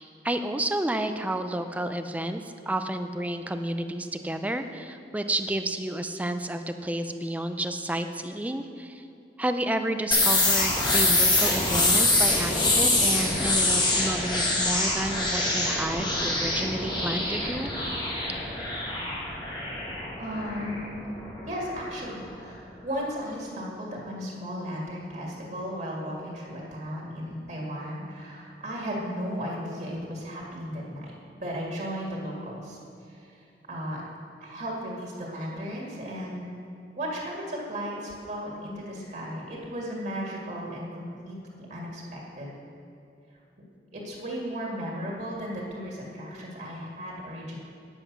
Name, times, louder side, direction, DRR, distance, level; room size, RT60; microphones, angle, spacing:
voice 1, 0.0-9.0 9.4-17.7, right 1 dB, 10° right, 8 dB, 0.4 m, -31 dB
sound 1, 10.1-21.7, left 2 dB, 25° left, 1.8 m, -25 dB
voice 2, 20.2-21.1 21.5-31.1 31.4-34.0 34.4-36.5 36.9-42.5 43.9-47.6, equal, 45° right, -3 dB, 2.0 m, -35 dB
9.8 x 7.8 x 6.1 m, 2.7 s
head